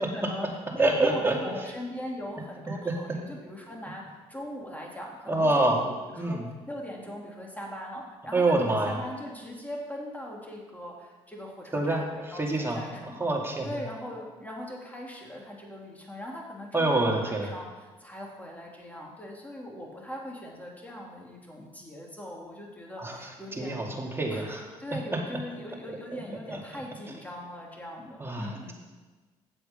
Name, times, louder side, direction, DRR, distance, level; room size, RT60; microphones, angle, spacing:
voice 1, 0.0-6.4 6.7-13.3 13.6-24.0 24.3-28.7, left 1 dB, 10° left, -1 dB, 3.0 m, -40 dB
voice 2, 0.8-1.4 2.8-2.9 5.3-5.8 6.2-6.4 8.3-9.0 11.7-12.1 12.4-12.9 13.2-13.7 16.7-17.5 23.0-23.2 23.6-24.6 26.1-26.2 26.5-26.6 28.2-28.7, right 2 dB, 15° right, -1 dB, 2.5 m, -26 dB
8.9 x 7.6 x 5.3 m, 1.3 s
supercardioid pair, 55°, 14 cm